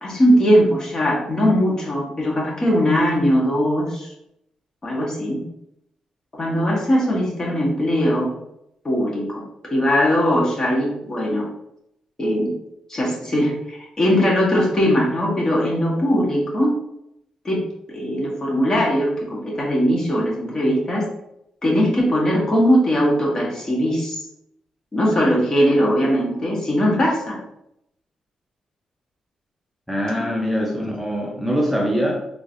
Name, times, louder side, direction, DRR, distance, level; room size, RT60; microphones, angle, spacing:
voice 1, 0.0-4.1 4.8-5.4 6.4-8.3 8.8-9.4 9.7-11.5 12.2-12.5 12.9-16.7 17.4-17.6 17.9-21.1 21.6-24.2 24.9-27.4 30.1-30.3, equal, 35° left, -2 dB, 1.3 m, -20 dB
voice 2, 29.9-32.2, equal, ahead, -2 dB, 0.7 m, -23 dB
3.7 x 3.3 x 2.6 m, 0.78 s
cardioid pair, 80°, 2 cm